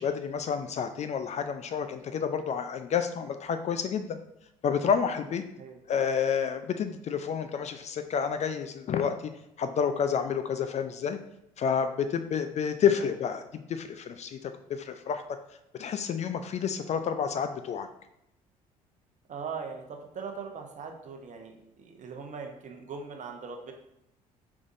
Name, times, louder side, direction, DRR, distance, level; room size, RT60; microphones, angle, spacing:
voice 1, 0.0-4.2 4.6-5.4 5.9-9.3 9.6-11.2 11.6-13.4 13.7-15.2 15.8-17.9, left 7 dB, 35° left, 9 dB, 0.4 m, -29 dB
voice 2, 19.3-23.7, right 5 dB, 40° right, 3 dB, 0.8 m, -40 dB
5.0 x 3.5 x 2.6 m, 0.83 s
hypercardioid pair, 55°, 19 cm